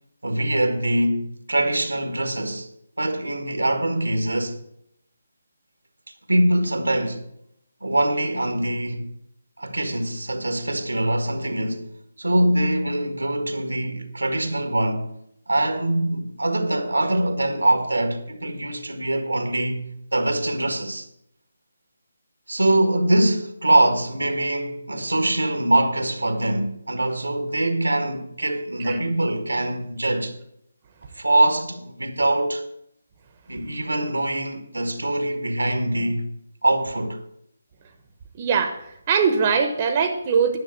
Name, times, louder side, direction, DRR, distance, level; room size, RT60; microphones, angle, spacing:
voice 1, 0.2-2.7 3.0-4.6 6.3-7.2 7.8-9.1 9.6-11.9 12.2-15.1 15.5-21.1 22.5-30.3 31.1-32.7 33.5-36.3 36.6-37.2, right 1 dB, 85° right, 1.6 m, -23 dB
voice 2, 38.4-40.6, right 6 dB, 30° right, 1.1 m, -22 dB
10.5 x 6.4 x 8.3 m
figure-of-eight pair, 150°, 0 cm